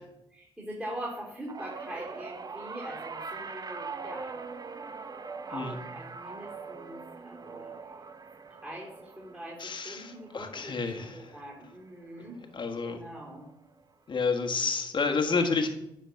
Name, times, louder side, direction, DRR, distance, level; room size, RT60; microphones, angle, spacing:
voice 1, 0.0-4.4 5.5-7.7 8.5-12.4 12.8-13.5, right 1 dB, 10° right, -6 dB, 3.4 m, -43 dB
sound 1, 1.5-11.9 12.3-12.7 13.8-13.9, right 4 dB, 35° right, 0.7 m, -42 dB
voice 2, 9.6-11.3 12.5-13.0 14.1-15.7, left 4 dB, 45° left, 5 dB, 1.5 m, -30 dB
10.0 x 4.5 x 5.8 m, 0.84 s
hypercardioid pair, 50°, 11 cm